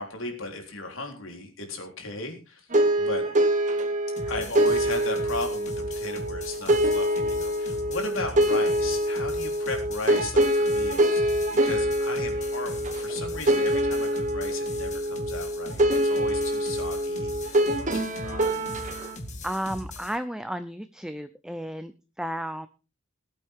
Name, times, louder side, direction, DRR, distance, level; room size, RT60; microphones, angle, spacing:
voice 1, 0.0-2.7 3.0-3.2 4.3-18.9, left 3 dB, 80° left, 3 dB, 3.6 m, -36 dB
sound 1, 2.7-19.2, right 1 dB, 40° right, 1.4 m, -25 dB
sound 2, 4.2-20.2, left 1 dB, 35° left, 1.9 m, -40 dB
voice 2, 18.8-19.1 19.4-21.9 22.2-22.7, equal, 5° right, 10 dB, 0.5 m, -33 dB
20.0 x 8.5 x 3.6 m, 0.31 s
head